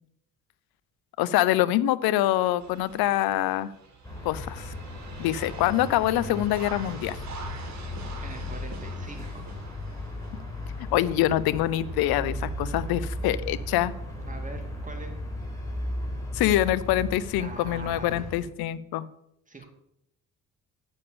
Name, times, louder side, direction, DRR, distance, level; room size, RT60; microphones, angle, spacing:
voice 1, 1.2-3.7 4.2-4.7 5.2-7.2 10.9-13.9 16.3-19.1, left 14 dB, 65° left, 17 dB, 0.7 m, -25 dB
sound 1, 2.6-11.2 11.7-11.8 14.2-14.3, right 4 dB, 45° right, 2.4 m, -45 dB
sound 2, 4.0-18.4, left 1 dB, 10° left, 4.7 m, -36 dB
voice 2, 8.2-9.5 14.3-15.1 17.4-18.5 19.5-19.7, right 3 dB, 20° right, 3 dB, 2.5 m, -42 dB
8.4 x 7.1 x 6.9 m, 0.78 s
hypercardioid pair, 50°, 39 cm